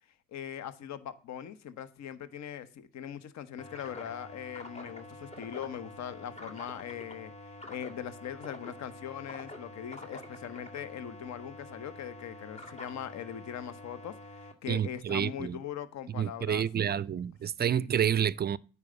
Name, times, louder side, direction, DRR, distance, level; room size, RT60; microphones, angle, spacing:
voice 1, 0.3-16.9 17.6-17.9, left 9 dB, 55° left, 1.1 m, -41 dB
sound 1, 3.6-14.5, left 1 dB, 20° left, 2.0 m, -47 dB
voice 2, 14.7-15.6 16.2-18.6, right 9 dB, 30° right, 0.4 m, -29 dB
9.6 x 5.0 x 7.8 m
hypercardioid pair, 60°, 33 cm